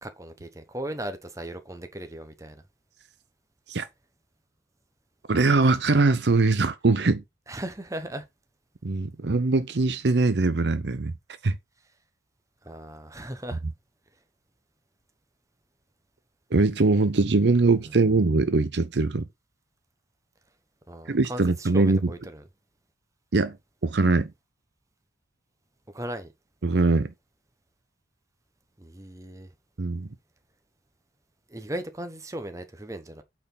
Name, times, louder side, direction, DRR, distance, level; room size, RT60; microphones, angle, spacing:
voice 1, 0.0-2.6 7.5-8.3 12.6-13.6 20.9-22.4 25.9-26.3 28.8-29.5 31.5-33.2, right 1 dB, 20° right, 1.2 m, -37 dB
voice 2, 5.3-7.2 8.8-11.1 11.4-11.6 16.5-19.2 21.1-22.1 23.3-23.6 23.8-24.3 26.6-27.1 29.8-30.1, right 3 dB, 70° right, 0.7 m, -22 dB
8.7 x 4.7 x 4.0 m
head